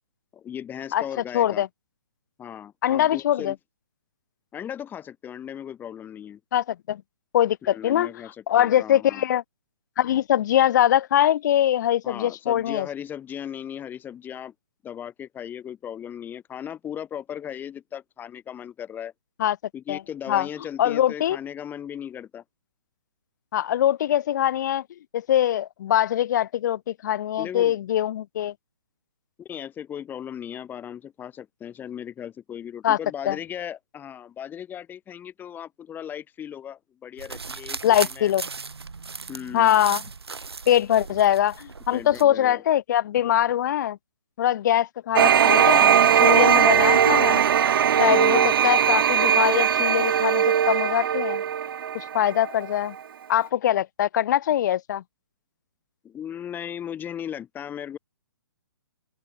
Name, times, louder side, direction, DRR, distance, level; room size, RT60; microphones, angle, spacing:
voice 1, 0.3-1.6 2.4-3.5 4.5-6.4 7.6-9.2 12.0-14.5 14.8-19.1 19.7-22.4 27.4-27.8 29.4-38.3 39.3-39.7 41.9-42.6 48.0-48.5 56.0-58.0, left 9 dB, 15° left, 6.3 m, -37 dB
voice 2, 1.3-1.7 2.8-3.5 6.5-7.0 7.3-8.1 8.5-9.4 10.0-12.9 19.4-19.6 19.9-20.0 20.3-20.5 20.8-21.4 23.5-24.8 25.1-28.5 32.8-33.0 33.2-33.4 37.8-38.4 39.5-40.0 40.7-44.0 44.4-47.4 48.0-51.4 51.9-52.9 53.3-55.0, left 11 dB, 50° left, 1.6 m, -22 dB
sound 1, 37.2-42.2, right 4 dB, 85° right, 3.2 m, -37 dB
sound 2, 45.2-52.8, right 8 dB, 60° right, 0.6 m, -19 dB
open air
hypercardioid pair, 140°, 13 cm